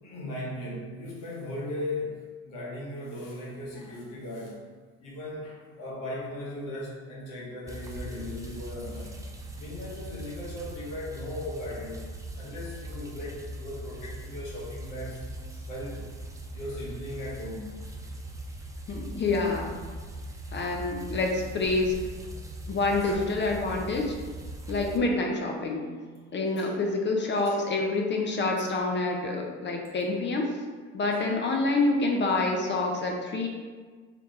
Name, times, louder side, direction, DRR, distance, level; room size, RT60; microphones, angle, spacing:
voice 1, 0.0-4.6 5.0-9.2 9.6-12.0 12.4-15.2 15.5-16.1 16.5-17.7 23.0-23.2 26.6-26.7 27.5-27.6 31.1-31.3, left 1 dB, 65° left, -6 dB, 1.3 m, -38 dB
sound 1, 7.7-25.0, right 1 dB, 10° right, 0.5 m, -40 dB
voice 2, 18.9-19.8 20.5-22.0 22.7-24.1 24.7-25.9 26.3-30.6 30.9-33.5, left 3 dB, 30° left, 1 dB, 0.7 m, -27 dB
3.5 x 2.9 x 3.7 m, 1.5 s
hypercardioid pair, 75°, 36 cm